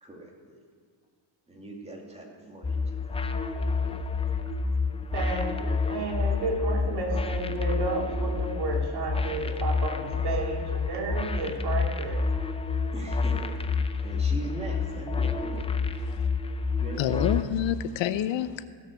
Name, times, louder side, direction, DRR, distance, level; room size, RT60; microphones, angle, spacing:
voice 1, 0.0-0.6 1.5-3.3 12.9-13.7 14.0-15.7 16.8-17.3, right 2 dB, 15° right, 2.5 m, -41 dB
sound 1, 2.6-17.4, left 4 dB, 15° left, 0.4 m, -29 dB
voice 2, 5.1-12.2, right 2 dB, 55° right, 2.6 m, -32 dB
voice 3, 17.0-18.6, left 11 dB, 70° left, 0.7 m, -27 dB
16.5 x 6.5 x 6.2 m
cardioid pair, 125°, 47 cm